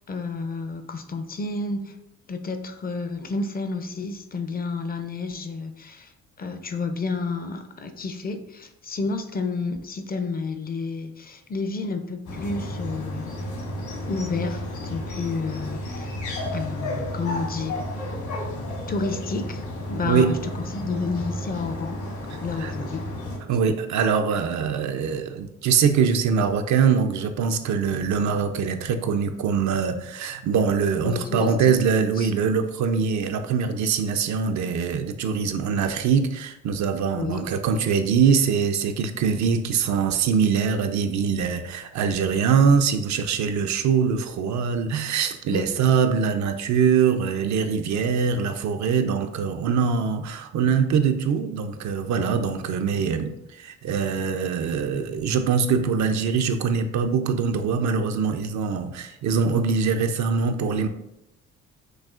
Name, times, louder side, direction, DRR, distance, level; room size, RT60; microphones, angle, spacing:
voice 1, 0.1-2.0 2.3-6.1 6.4-13.3 14.1-16.2 16.5-17.8 18.9-22.0 22.4-23.1 31.0-31.7 32.2-32.3 37.1-37.4 45.5-45.7, left 4 dB, 30° left, 0.4 m, -30 dB
sound 1, 12.3-23.4, left 1 dB, 70° left, 1.4 m, -32 dB
voice 2, 20.1-20.4 22.6-22.7 23.5-60.9, right 6 dB, 65° right, 0.5 m, -23 dB
6.3 x 2.4 x 2.4 m
cardioid pair, 90°, 30 cm